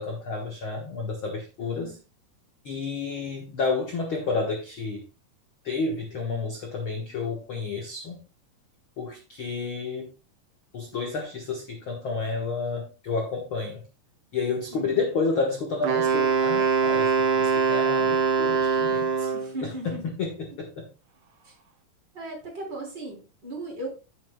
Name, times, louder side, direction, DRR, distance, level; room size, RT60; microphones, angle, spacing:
voice 1, 0.0-2.0 2.6-5.0 5.6-8.2 9.0-10.1 10.7-13.8 14.3-19.3 19.8-20.9, left 4 dB, 55° left, 1.6 m, -30 dB
voice 2, 1.6-2.0 14.7-15.0 19.3-20.1 20.5-20.6 21.4-21.5 22.1-23.9, right 1 dB, 30° right, 4.1 m, -37 dB
Wind instrument woodwind instrument, 15.8-19.6, right 5 dB, 55° right, 1.5 m, -23 dB
10.5 x 8.7 x 2.3 m
omnidirectional pair, 3.9 m